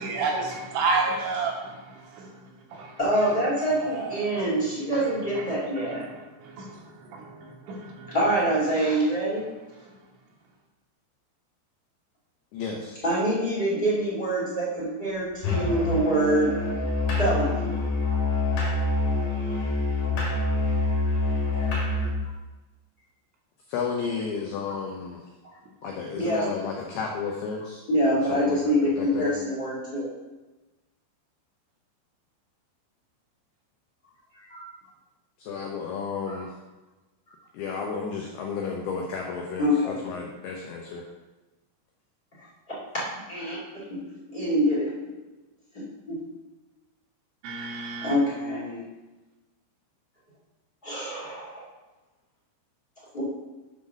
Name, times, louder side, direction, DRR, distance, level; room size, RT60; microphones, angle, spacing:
voice 1, 0.0-1.8 2.7-2.9 3.8-4.3 5.9-6.0 6.4-6.8 7.1-8.1 47.4-48.1, right 3 dB, 80° right, 0 dB, 3.1 m, -30 dB
voice 2, 3.0-6.0 8.1-9.4 13.0-16.5 17.2-17.7 26.1-26.5 27.9-30.1 34.3-34.6 36.2-36.3 39.6-39.9 42.4-42.5 42.9-43.0 43.3-44.0 44.3-44.9 45.7-46.2 48.0-48.8 50.8-51.6 53.1-53.2, equal, 25° left, -9 dB, 1.0 m, -25 dB
voice 3, 12.5-13.0 23.7-25.2 25.8-27.8 28.3-29.3 35.4-36.5 37.5-41.0, left 5 dB, 85° left, 1 dB, 2.2 m, -32 dB
Musical instrument, 15.4-22.2, left 2 dB, 50° left, 3.0 m, -26 dB
7.4 x 3.9 x 6.2 m, 1.1 s
omnidirectional pair, 5.5 m